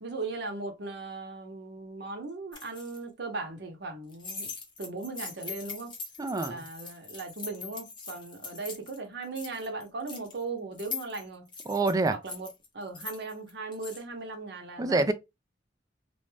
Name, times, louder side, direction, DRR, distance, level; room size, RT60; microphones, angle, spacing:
voice 1, 0.0-4.5 4.8-5.9 6.4-11.5 12.1-12.5 12.7-15.1, right 3 dB, 65° right, 0.8 m, -38 dB
sound 1, 2.5-3.0 4.1-9.0 9.2-10.4 10.8-14.0, left 5 dB, 25° left, 0.8 m, -42 dB
voice 2, 6.2-6.6 11.7-12.1 14.8-15.1, right 3 dB, 20° right, 0.3 m, -26 dB
2.6 x 2.2 x 3.1 m
head